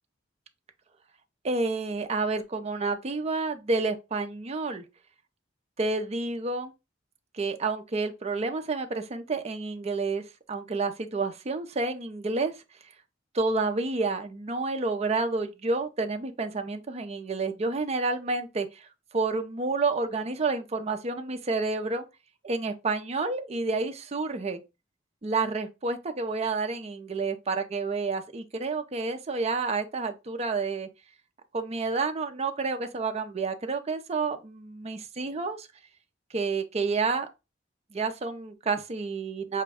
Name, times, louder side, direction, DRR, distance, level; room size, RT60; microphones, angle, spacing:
voice 1, 1.4-4.8 5.8-6.7 7.3-12.5 13.3-18.9 19.1-22.0 22.4-24.6 25.2-30.9 31.5-35.7 36.3-37.3 37.9-39.6, right 3 dB, 35° right, 0.5 m, -29 dB
5.0 x 2.2 x 3.4 m
head